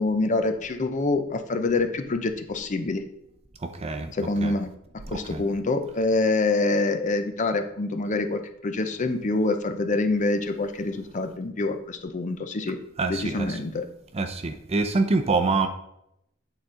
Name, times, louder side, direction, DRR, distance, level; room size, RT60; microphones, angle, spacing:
voice 1, 0.0-3.0 4.1-4.7 5.1-12.8 13.1-13.8, left 3 dB, 35° left, 7 dB, 0.5 m, -26 dB
voice 2, 3.6-4.1 4.4-4.5 5.1-5.4 13.0-13.6 14.1-15.7, right 3 dB, 30° right, 7 dB, 0.5 m, -26 dB
8.3 x 4.1 x 3.8 m, 0.79 s
head